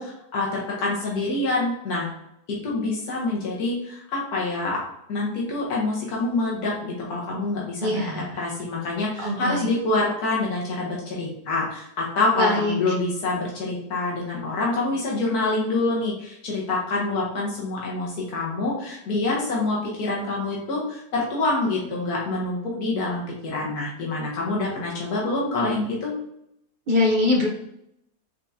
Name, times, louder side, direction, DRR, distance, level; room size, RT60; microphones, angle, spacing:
voice 1, 0.0-2.1 2.5-4.8 5.1-26.2, left 2 dB, 80° left, -4 dB, 1.5 m, -26 dB
voice 2, 7.8-8.4 9.2-9.7 12.4-12.9 26.9-27.5, left 2 dB, 55° right, 0 dB, 0.5 m, -23 dB
4.5 x 3.5 x 2.7 m, 0.77 s
omnidirectional pair, 1.6 m